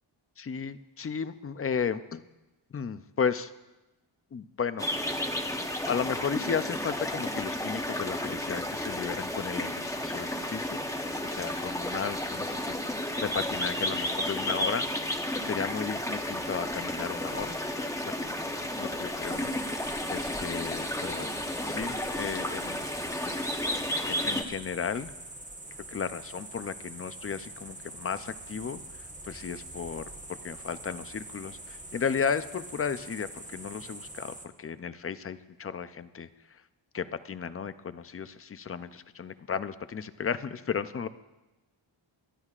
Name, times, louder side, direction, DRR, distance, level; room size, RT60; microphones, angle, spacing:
voice 1, 0.4-2.2 2.7-3.5 4.3-4.9 5.9-10.8 11.2-12.7 13.2-17.8 18.0-18.2 18.6-19.5 20.1-21.3 21.7-22.9 23.2-23.4 24.1-25.1 25.9-28.8 29.2-30.0 30.3-36.6 36.9-41.1, left 6 dB, 30° left, 12 dB, 0.4 m, -34 dB
sound 1, 4.8-24.4, left 1 dB, 5° left, 0.8 m, -32 dB
sound 2, 19.2-34.5, right 2 dB, 15° right, 1.0 m, -44 dB
28.0 x 12.5 x 2.4 m, 1.1 s
wide cardioid pair, 155°, 49 cm